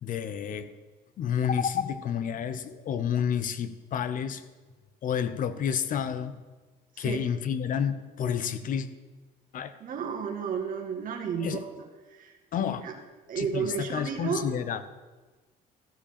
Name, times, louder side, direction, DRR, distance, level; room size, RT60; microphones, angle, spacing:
voice 1, 0.0-0.7 1.2-4.4 5.0-6.4 7.0-8.9 9.5-9.7 11.4-11.6 12.5-12.8 13.3-14.8, left 8 dB, 55° left, 12 dB, 0.8 m, -30 dB
voice 2, 9.8-11.6 12.2-12.3 12.8-12.9 13.3-14.5, right 6 dB, 55° right, 1 dB, 1.7 m, -32 dB
14.0 x 5.0 x 6.8 m, 1.3 s
cardioid pair, 110°, 17 cm